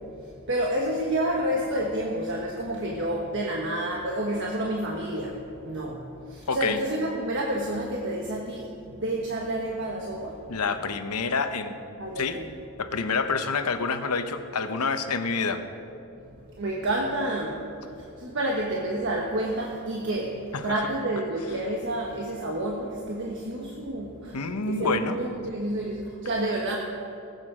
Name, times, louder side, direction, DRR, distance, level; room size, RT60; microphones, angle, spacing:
voice 1, 0.5-5.3 5.6-10.4 12.0-12.5 16.6-17.6 18.2-24.4 24.7-26.8, right 1 dB, 55° right, -1 dB, 1.3 m, -29 dB
voice 2, 6.5-6.8 10.5-11.8 12.2-12.4 12.8-15.6 20.5-20.7 24.3-25.2, left 4 dB, 90° left, 8 dB, 0.9 m, -27 dB
18.5 x 8.1 x 5.0 m, 2.8 s
head